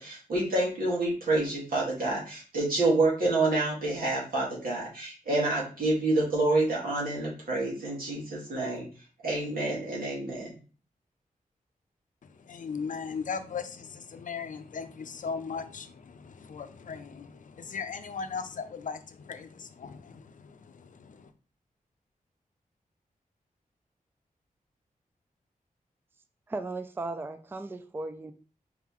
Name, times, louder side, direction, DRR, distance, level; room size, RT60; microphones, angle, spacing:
voice 1, 0.0-8.9 9.2-10.6, right 2 dB, 90° right, -5 dB, 2.1 m, -28 dB
voice 2, 12.2-21.3, left 5 dB, 65° left, 9 dB, 0.5 m, -38 dB
voice 3, 26.5-28.3, right 2 dB, 15° right, 8 dB, 0.3 m, -36 dB
4.8 x 3.6 x 3.1 m, 0.37 s
wide cardioid pair, 130°, 14 cm